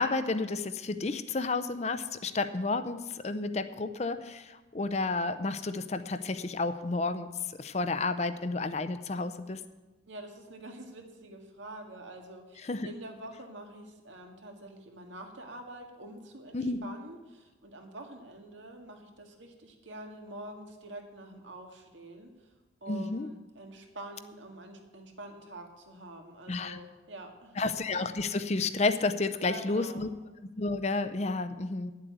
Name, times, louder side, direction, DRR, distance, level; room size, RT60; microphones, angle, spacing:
voice 1, 0.0-7.3 7.6-9.6 12.6-12.9 16.5-16.9 22.9-23.3 26.5-26.8 27.6-30.1 30.6-31.9, left 3 dB, 35° left, 10 dB, 0.6 m, -31 dB
voice 2, 10.1-22.5 22.8-27.6 29.4-30.1, right 1 dB, 85° right, 3 dB, 1.9 m, -46 dB
9.3 x 7.6 x 9.3 m, 1.1 s
head